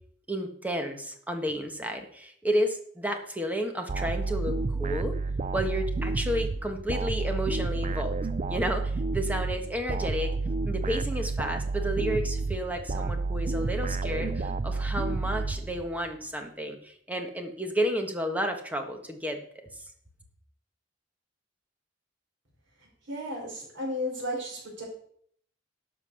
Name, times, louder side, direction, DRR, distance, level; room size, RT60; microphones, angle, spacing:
voice 1, 0.3-5.2 5.5-8.2 8.5-10.3 10.6-19.4, equal, 10° right, 5 dB, 1.4 m, -31 dB
sound 1, 3.9-16.1, right 3 dB, 40° right, 0.5 m, -30 dB
voice 2, 22.8-24.8, left 1 dB, 80° right, -1 dB, 5.1 m, -34 dB
12.0 x 6.5 x 6.4 m, 0.63 s
head